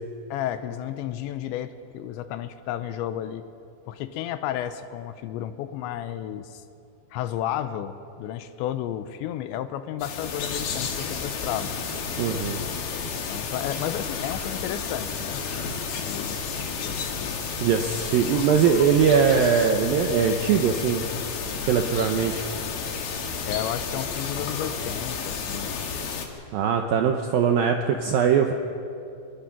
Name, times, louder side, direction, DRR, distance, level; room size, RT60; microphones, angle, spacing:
voice 1, 0.3-3.5 3.9-6.6 7.1-11.7 13.3-15.4 16.0-17.3 23.5-25.7, left 11 dB, 80° left, 11 dB, 3.0 m, -32 dB
sound 1, 10.0-26.3, left 5 dB, 60° left, 3.5 m, -31 dB
voice 2, 12.2-12.6 17.6-21.0 21.7-22.5 26.5-28.5, right 7 dB, 80° right, 4 dB, 2.1 m, -21 dB
24.5 x 20.5 x 6.0 m, 2.6 s
omnidirectional pair, 5.3 m